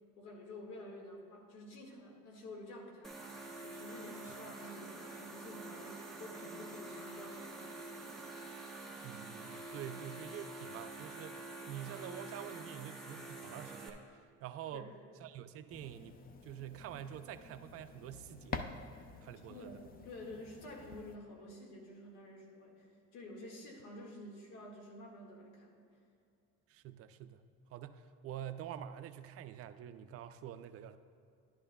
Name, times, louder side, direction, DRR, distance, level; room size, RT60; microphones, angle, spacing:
voice 1, 0.2-3.3 3.6-7.8 14.7-14.9 19.5-22.9 23.1-25.8, left 1 dB, 85° left, 0 dB, 1.8 m, -50 dB
sound 1, 3.0-13.9, right 2 dB, ahead, 0.9 m, -47 dB
voice 2, 9.0-14.9 15.2-18.7 19.2-19.8 26.7-27.4 27.7-31.0, right 10 dB, 50° right, 11 dB, 0.4 m, -47 dB
sound 2, 15.7-21.2, left 5 dB, 30° left, 0.4 m, -48 dB
11.0 x 11.0 x 2.2 m, 2.4 s
cardioid pair, 130°, 30 cm